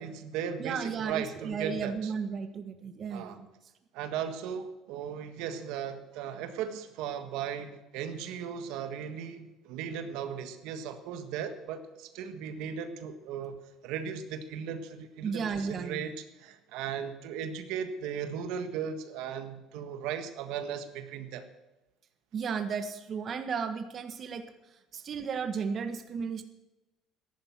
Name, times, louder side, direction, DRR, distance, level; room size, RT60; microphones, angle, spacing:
voice 1, 0.0-2.1 3.1-3.4 3.9-13.6 13.8-21.4, right 8 dB, 80° right, 8 dB, 1.6 m, -37 dB
voice 2, 0.6-3.5 15.2-16.1 22.3-24.4 24.9-26.4, right 6 dB, 40° right, 8 dB, 1.5 m, -34 dB
14.0 x 11.0 x 7.6 m, 1.0 s
cardioid pair, 115°, 0 cm